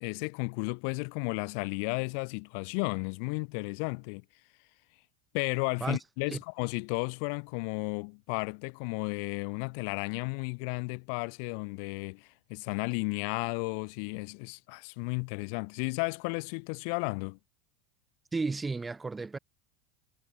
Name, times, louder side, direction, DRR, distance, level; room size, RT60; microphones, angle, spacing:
voice 1, 0.0-4.2 5.3-17.4, left 40 dB or more, 65° left, 0.5 m, -33 dB
voice 2, 18.3-19.4, right 3 dB, 15° right, 2.1 m, -33 dB
hypercardioid pair, 100°, 0 cm